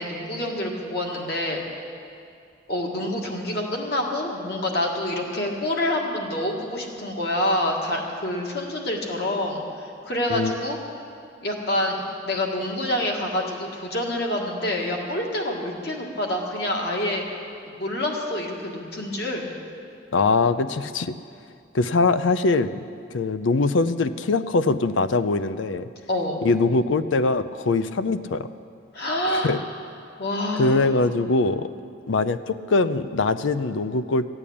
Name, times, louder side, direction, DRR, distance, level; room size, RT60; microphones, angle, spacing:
voice 1, 0.0-1.6 2.7-10.8 11.4-12.0 12.2-17.2 17.6-19.5 26.1-26.4 28.9-29.6 30.2-30.8, left 1 dB, 55° left, 0 dB, 1.9 m, -27 dB
voice 2, 20.1-21.1 21.7-22.7 23.1-25.9 26.4-28.5 29.3-29.6 30.6-31.7 32.1-34.3, left 3 dB, 80° left, 12 dB, 0.5 m, -22 dB
14.5 x 8.9 x 8.5 m, 2.4 s
head